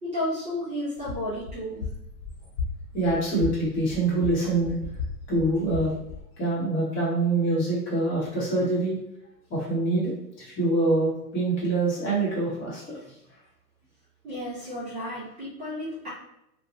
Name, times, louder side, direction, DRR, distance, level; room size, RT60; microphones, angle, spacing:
voice 1, 0.0-1.8 14.2-16.1, left 1 dB, 15° right, -11 dB, 0.7 m, -32 dB
sound 1, 1.0-6.2, left 4 dB, 50° left, 0.8 m, -36 dB
voice 2, 2.9-4.7 5.3-5.9 6.4-9.0 9.5-13.1, right 2 dB, 25° left, -6 dB, 1.0 m, -25 dB
2.8 x 2.2 x 2.6 m, 0.83 s
hypercardioid pair, 115°, 49 cm